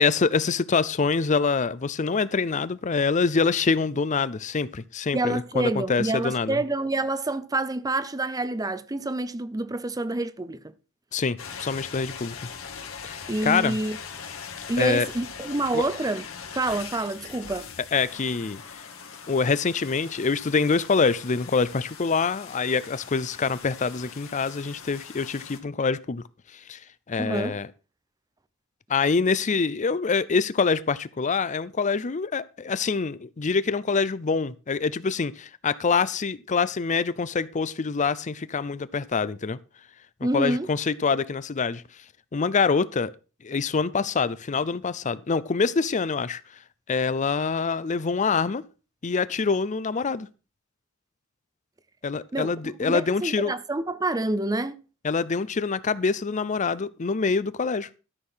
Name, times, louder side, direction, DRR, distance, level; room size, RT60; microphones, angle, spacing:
voice 1, 0.0-6.6 11.1-12.4 13.0-13.8 14.8-15.1 15.7-15.8 17.9-18.6 19.3-26.2 26.5-26.8 27.1-27.7 28.9-39.6 40.3-41.8 42.3-43.1 43.4-46.4 46.9-48.6 49.0-50.3 52.0-53.5 55.0-57.9, left 5 dB, 35° left, 0.5 m, -25 dB
voice 2, 5.1-10.7 13.3-14.0 14.7-16.2 16.5-17.7 27.2-27.6 40.2-40.7 52.3-52.5 52.8-54.8, right 2 dB, 20° right, 0.6 m, -27 dB
sound 1, 11.4-25.6, left 6 dB, 90° left, 2.2 m, -41 dB
13.0 x 6.5 x 5.6 m
head